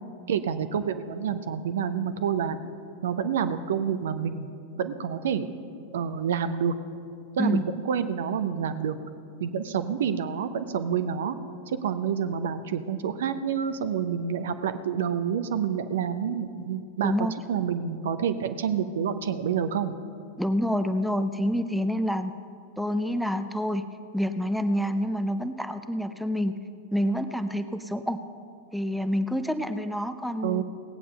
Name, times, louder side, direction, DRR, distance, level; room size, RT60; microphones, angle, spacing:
voice 1, 0.3-2.6 3.0-4.5 4.8-5.4 5.9-6.7 7.4-9.0 9.4-11.4 11.7-17.1 17.5-20.0 30.4-30.6, right 7 dB, 60° right, 11 dB, 0.6 m, -28 dB
voice 2, 20.4-22.4 22.8-23.9 24.1-26.6 26.9-28.2 28.7-30.6, equal, ahead, 9 dB, 0.5 m, -27 dB
17.5 x 8.4 x 5.5 m, 2.4 s
figure-of-eight pair, 90°, 0 cm